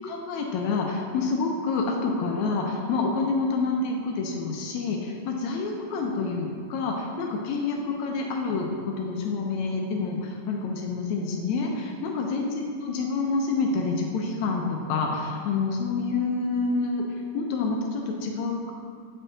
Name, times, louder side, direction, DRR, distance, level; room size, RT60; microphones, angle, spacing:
voice 1, 0.0-12.5 12.8-17.0 17.3-18.7, left 4 dB, 80° left, 1 dB, 1.7 m, -28 dB
9.0 x 4.4 x 3.8 m, 2.1 s
omnidirectional pair, 3.8 m